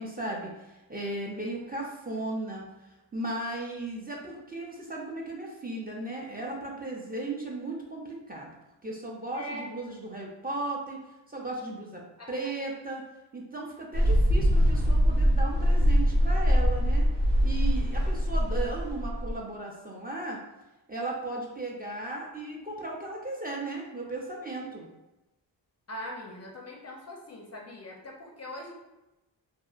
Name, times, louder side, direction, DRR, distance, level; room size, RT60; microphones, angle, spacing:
voice 1, 0.0-2.7 3.1-8.5 8.8-11.0 11.3-12.0 12.3-13.0 13.3-17.1 17.4-20.4 20.9-24.9, right 2 dB, 20° right, -2 dB, 0.5 m, -36 dB
voice 2, 9.3-9.7 12.2-12.3 25.9-28.7, left 1 dB, 35° left, 0 dB, 0.4 m, -41 dB
Mechanical fan, 13.9-19.3, equal, 65° right, 0.7 m, -23 dB
2.7 x 2.5 x 2.3 m, 0.99 s
cardioid pair, 75°, 44 cm